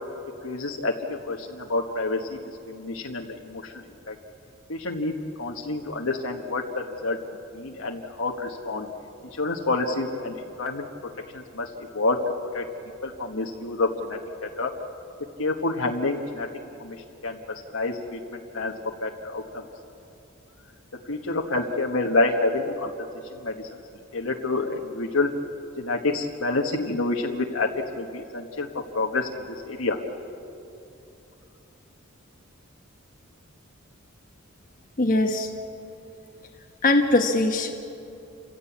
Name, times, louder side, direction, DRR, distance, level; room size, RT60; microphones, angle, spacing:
voice 1, 0.4-2.4 2.7-4.1 4.7-7.2 7.5-8.9 9.4-10.9 11.3-12.2 12.5-12.6 13.0-14.7 15.4-16.5 16.8-17.0 17.2-17.4 17.7-18.7 19.0-19.6 21.1-22.9 23.4-23.7 24.1-25.3 25.8-27.7 28.0-28.7 28.9-30.0, left 2 dB, 75° left, 0 dB, 1.4 m, -28 dB
voice 2, 35.0-35.5 36.8-37.7, left 2 dB, 40° left, 2 dB, 1.2 m, -21 dB
29.0 x 16.0 x 8.6 m, 2.8 s
head